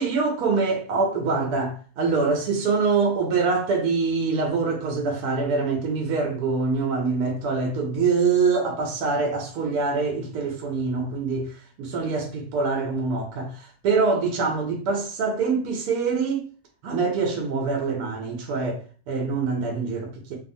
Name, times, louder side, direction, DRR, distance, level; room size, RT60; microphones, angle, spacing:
voice 1, 0.0-16.5 16.8-20.4, right 4 dB, 80° right, 1.1 m, -25 dB
2.6 x 2.4 x 2.5 m
omnidirectional pair, 1.6 m